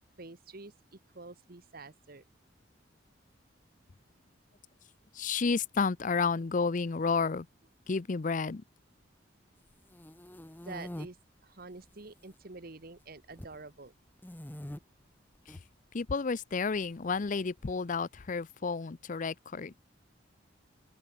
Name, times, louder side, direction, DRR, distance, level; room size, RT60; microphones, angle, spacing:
voice 1, 0.2-2.2 10.6-11.2 11.4-13.9, right 3 dB, 50° right, 1.3 m, -47 dB
voice 2, 5.1-7.5 7.9-8.6 15.9-19.7, left 4 dB, 45° left, 0.5 m, -31 dB
sound 1, 9.7-11.1 11.7-12.3 12.6-13.6 14.2-14.8 15.3-15.6 16.7-17.7, equal, 10° left, 0.9 m, -44 dB
open air
head